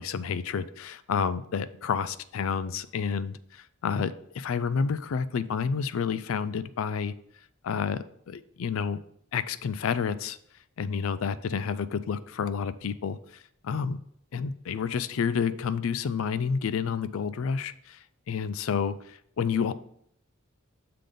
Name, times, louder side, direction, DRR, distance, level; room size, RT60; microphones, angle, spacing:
voice 1, 0.0-7.1 7.6-9.0 9.3-10.4 10.8-13.2 13.6-14.0 14.3-19.7, left 6 dB, 70° left, 15 dB, 0.4 m, -30 dB
6.7 x 3.8 x 5.1 m, 0.69 s
head